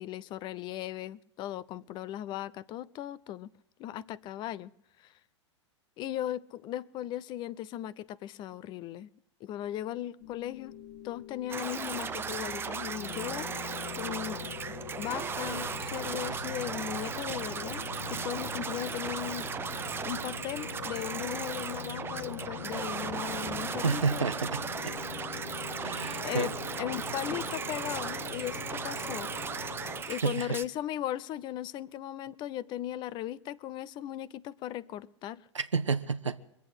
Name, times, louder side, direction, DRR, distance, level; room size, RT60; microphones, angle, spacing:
voice 1, 0.0-3.5 3.8-4.7 5.0-5.1 6.0-9.1 9.4-10.7 11.0-13.5 13.9-14.4 15.0-19.5 20.0-24.2 26.2-29.3 30.1-35.5, left 12 dB, 30° left, 0.6 m, -37 dB
sound 1, 10.2-30.0, left 6 dB, 60° left, 1.7 m, -42 dB
sound 2, 11.5-30.6, right 6 dB, 15° right, 0.7 m, -37 dB
voice 2, 23.8-24.9 25.8-26.5 30.0-30.5 35.5-36.4, right 5 dB, 85° right, 0.8 m, -30 dB
22.5 x 8.2 x 7.8 m
figure-of-eight pair, 100°, 15 cm